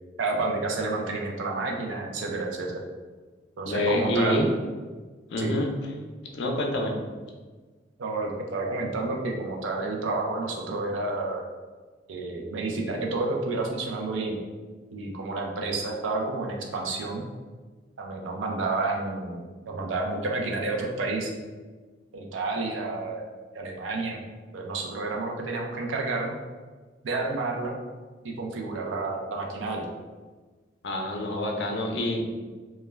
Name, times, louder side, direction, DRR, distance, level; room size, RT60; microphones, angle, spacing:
voice 1, 0.2-2.8 3.6-4.5 5.4-5.5 8.0-11.4 12.1-14.4 14.9-17.2 18.0-21.3 22.1-23.2 23.5-24.2 24.5-26.4 27.0-27.8 28.2-29.8, right 3 dB, 85° right, 0 dB, 0.5 m, -30 dB
voice 2, 3.6-4.5 5.3-5.7 6.3-6.9 30.8-32.3, left 1 dB, 65° left, 2 dB, 0.4 m, -27 dB
2.2 x 2.2 x 3.1 m, 1.4 s
head